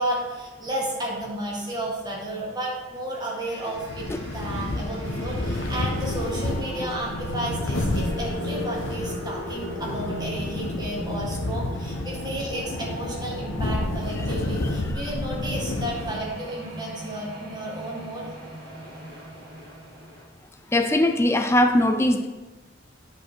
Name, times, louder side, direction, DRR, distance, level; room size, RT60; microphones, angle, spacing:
voice 1, 0.0-18.3, right 1 dB, 20° right, -3 dB, 1.8 m, -32 dB
sound 1, 3.3-20.2, equal, 55° right, 2.4 m, -43 dB
sound 2, 3.7-16.5, left 2 dB, 80° left, 0.8 m, -30 dB
sound 3, 3.8-14.0, equal, 35° left, 1.8 m, -37 dB
voice 2, 20.7-22.3, left 1 dB, 15° left, 6 dB, 0.3 m, -21 dB
8.6 x 5.2 x 4.5 m, 1.2 s
head